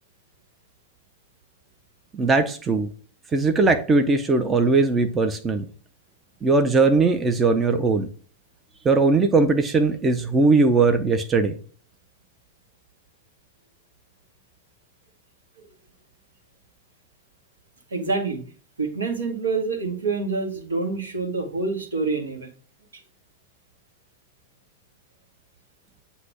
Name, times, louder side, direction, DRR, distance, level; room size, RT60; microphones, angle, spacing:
voice 1, 2.1-2.9 3.3-5.6 6.4-8.1 8.8-11.6, right 3 dB, 20° right, 7 dB, 0.6 m, -19 dB
voice 2, 17.9-18.4 18.8-22.5, right 4 dB, 70° right, 2 dB, 1.4 m, -26 dB
7.8 x 2.7 x 5.8 m, 0.41 s
figure-of-eight pair, 90°, 0 cm